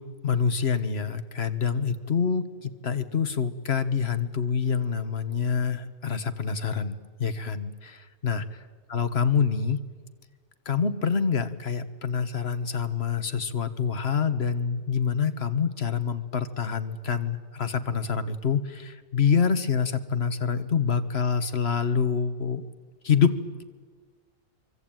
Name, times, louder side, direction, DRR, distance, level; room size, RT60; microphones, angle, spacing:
voice 1, 0.2-8.6 8.9-9.8 10.6-22.6 23.0-23.6, left 6 dB, 50° left, 11 dB, 1.6 m, -26 dB
25.5 x 24.0 x 9.2 m, 1.5 s
omnidirectional pair, 1.4 m